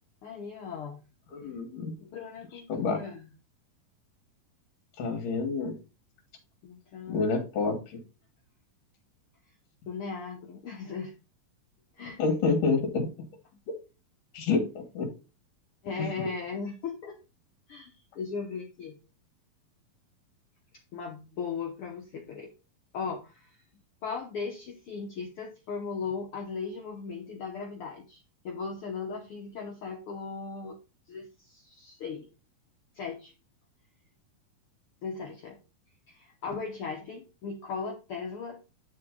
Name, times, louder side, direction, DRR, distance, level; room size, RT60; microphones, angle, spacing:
voice 1, 0.2-1.0 2.0-3.3 6.6-7.3 9.8-11.1 12.0-12.2 13.5-13.6 15.8-17.2 17.7-19.0 20.9-22.5 22.9-23.6 24.0-30.8 31.1-32.3 32.9-33.3 35.0-35.6 36.1-38.6, left 5 dB, 90° left, 0 dB, 1.2 m, -37 dB
voice 2, 1.3-1.9 2.7-3.0 5.0-5.7 7.1-8.0 12.2-13.1 13.7-13.8 14.3-15.1 16.0-16.1, left 4 dB, 65° left, 2 dB, 2.9 m, -28 dB
10.5 x 3.8 x 3.7 m, 0.30 s
omnidirectional pair, 4.1 m